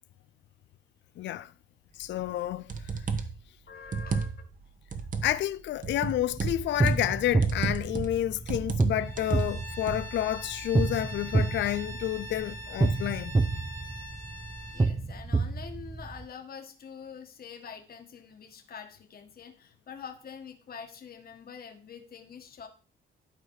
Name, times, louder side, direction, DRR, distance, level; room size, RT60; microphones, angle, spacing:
voice 1, 1.2-1.5 2.0-2.7 5.2-13.4, left 13 dB, 65° left, 0.5 m, -30 dB
sound 1, 2.2-2.3 2.7-3.4 3.9-4.6 4.9-5.4 5.8-7.1 7.4-8.2 8.5-8.9 9.2-10.0, right 5 dB, 40° right, 1.2 m, -33 dB
voice 2, 3.7-4.5 14.7-22.7, left 6 dB, 50° left, 1.6 m, -45 dB
sound 2, 6.3-16.2, right 3 dB, 15° right, 0.7 m, -29 dB
Bowed string instrument, 9.0-14.9, equal, 70° right, 3.4 m, -43 dB
12.0 x 4.6 x 4.7 m
cardioid pair, 90°, 20 cm